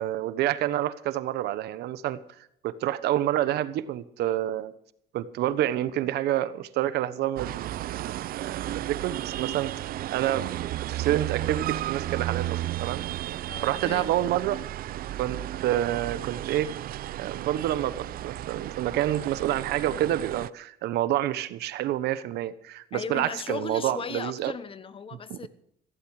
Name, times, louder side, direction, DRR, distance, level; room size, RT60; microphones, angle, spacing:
voice 1, 0.0-4.7 5.1-9.7 10.1-13.0 13.6-14.6 15.2-16.7 17.2-24.5 25.3-25.4, right 13 dB, 80° right, 14 dB, 1.2 m, -28 dB
sound 1, 7.4-20.5, right 14 dB, 60° right, 0.5 m, -33 dB
voice 2, 13.5-14.1 22.9-25.5, left 6 dB, 30° left, 14 dB, 1.2 m, -37 dB
16.0 x 14.5 x 4.9 m, 0.71 s
cardioid pair, 110°, 17 cm